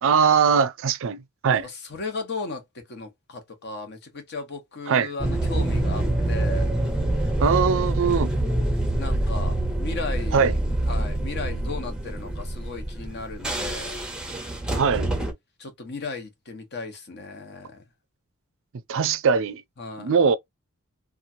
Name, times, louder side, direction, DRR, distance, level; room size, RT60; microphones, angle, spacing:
voice 1, 0.0-1.7 4.9-5.1 7.4-8.3 10.3-10.5 14.7-15.1 18.9-19.6 20.0-20.4, right 6 dB, 60° right, 0.4 m, -21 dB
voice 2, 1.5-6.7 9.0-10.6 10.9-14.0 15.6-17.8 19.8-20.2, left 3 dB, 50° left, 0.9 m, -36 dB
sound 1, 5.2-15.3, right 1 dB, 5° right, 0.6 m, -26 dB
2.9 x 2.3 x 2.6 m
head